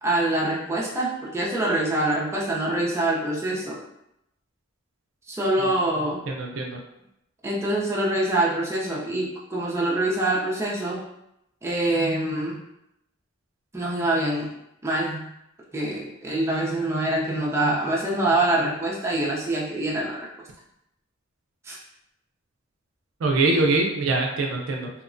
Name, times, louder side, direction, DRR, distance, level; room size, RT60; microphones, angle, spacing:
voice 1, 0.0-3.8 5.3-6.2 7.4-11.0 11.6-12.6 13.7-14.5 14.8-15.3 15.7-20.3 21.6-21.8, right 1 dB, 15° right, -5 dB, 0.5 m, -25 dB
voice 2, 6.3-6.8 23.2-24.9, right 3 dB, 70° right, 1 dB, 0.4 m, -23 dB
2.8 x 2.1 x 2.5 m, 0.82 s
head